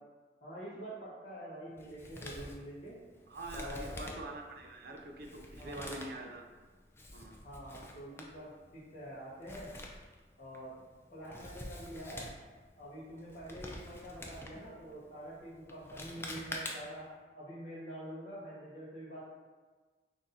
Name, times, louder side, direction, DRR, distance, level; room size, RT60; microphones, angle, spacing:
voice 1, 0.4-3.0 3.5-4.0 5.6-6.0 7.4-9.7 10.4-10.8 11.1-12.3 12.8-17.1 17.3-19.2, right 1 dB, 40° left, -11 dB, 1.1 m, -46 dB
Male speech man speaking, 1.8-17.1, left 1 dB, 15° left, 0.3 m, -48 dB
voice 2, 3.3-6.4 7.1-7.4, right 2 dB, 55° right, 3 dB, 0.4 m, -45 dB
6.0 x 2.6 x 2.7 m, 1.4 s
head